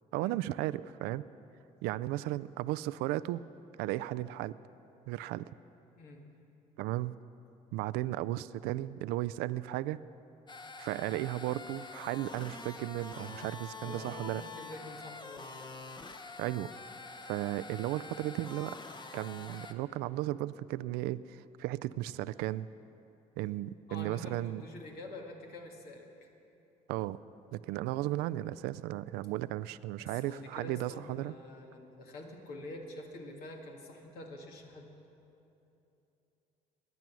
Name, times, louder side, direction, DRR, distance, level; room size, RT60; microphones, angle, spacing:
voice 1, 0.1-1.2 1.8-3.4 3.8-4.6 5.1-5.5 6.8-7.1 7.7-10.0 10.8-14.4 16.4-16.7 17.2-18.8 19.1-22.7 23.4-24.6 26.9-27.2 27.5-31.3, right 15 dB, 80° right, 15 dB, 0.4 m, -35 dB
sound 1, 10.5-19.7, left 3 dB, 30° left, 1.0 m, -46 dB
voice 2, 13.8-15.5 23.9-26.1 30.0-34.9, left 1 dB, 70° left, 1 dB, 2.0 m, -47 dB
18.5 x 11.0 x 6.2 m, 2.9 s
supercardioid pair, 75°, 16 cm